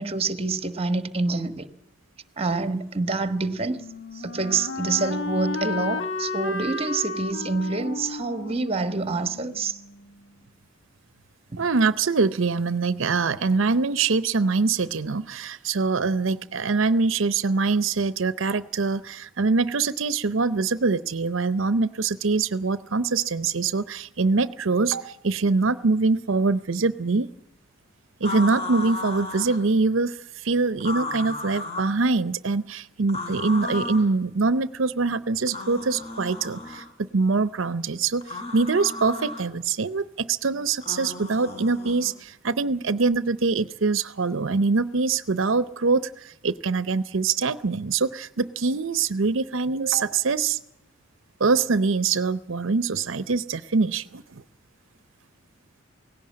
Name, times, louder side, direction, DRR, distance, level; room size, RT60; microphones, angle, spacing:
voice 1, 0.0-1.7 2.4-3.8 4.2-9.8 11.5-11.6, right 3 dB, 30° right, 1.2 m, -27 dB
Wind instrument woodwind instrument, 3.3-10.2, left 3 dB, 70° left, 1.5 m, -33 dB
voice 2, 11.6-27.3 28.2-50.6 51.4-54.4, right 4 dB, 75° right, 0.7 m, -24 dB
sound 1, 28.2-29.6 30.8-32.0 33.1-34.1 35.5-36.9 38.2-39.4 40.8-42.1, left 2 dB, 30° left, 4.2 m, -34 dB
18.5 x 16.5 x 8.6 m
head